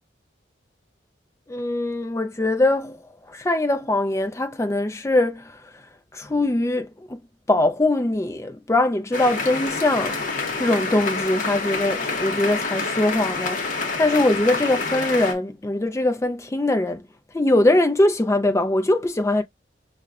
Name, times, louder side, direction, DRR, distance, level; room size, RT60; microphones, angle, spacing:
voice 1, 1.5-5.7 6.1-7.2 7.5-10.2 10.6-17.1 17.3-19.4, left 2 dB, 15° left, 0.3 m, -22 dB
sound 1, 9.1-15.3, left 3 dB, 40° left, 0.7 m, -27 dB
5.6 x 2.2 x 2.3 m
head